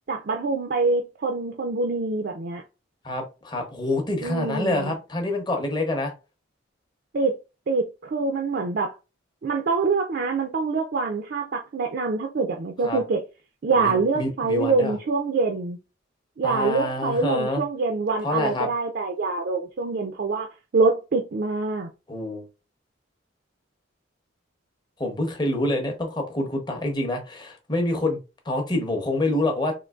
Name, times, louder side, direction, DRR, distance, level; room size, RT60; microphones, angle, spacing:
voice 1, 0.1-2.6 4.2-4.9 7.1-7.4 7.7-8.9 9.4-13.2 13.6-15.8 16.4-21.9, right 4 dB, 50° right, 0.4 m, -25 dB
voice 2, 3.0-6.1 12.8-13.0 13.8-14.9 16.4-17.6 18.2-18.7 22.1-22.5 25.0-28.2 28.5-29.7, left 1 dB, 20° left, 0.7 m, -26 dB
3.8 x 2.7 x 2.3 m
head